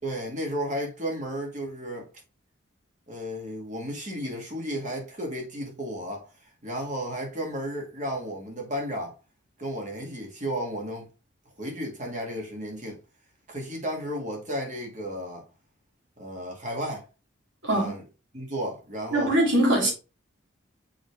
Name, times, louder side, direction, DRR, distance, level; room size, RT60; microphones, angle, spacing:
voice 1, 0.0-2.1 3.1-6.3 6.6-9.1 9.6-11.1 11.6-13.0 13.5-15.4 16.2-17.0 17.7-18.1 18.3-19.3 19.8-19.9, equal, 40° right, 2.1 m, -33 dB
voice 2, 17.6-18.0 19.1-19.9, right 1 dB, 65° right, 3.3 m, -22 dB
6.2 x 4.8 x 3.3 m
head